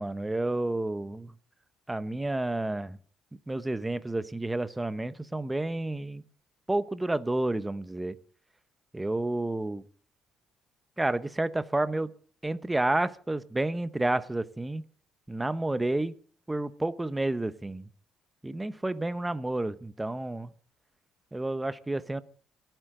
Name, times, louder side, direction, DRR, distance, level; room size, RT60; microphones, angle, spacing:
voice 1, 0.0-1.3 1.9-3.0 3.5-6.2 6.7-8.2 8.9-9.8 11.0-12.1 12.4-14.8 15.3-16.2 16.5-17.9 18.4-20.5 21.3-22.2, right 2 dB, 10° right, 14 dB, 0.9 m, -30 dB
27.0 x 9.2 x 3.8 m, 0.44 s
cardioid pair, 105°, 0 cm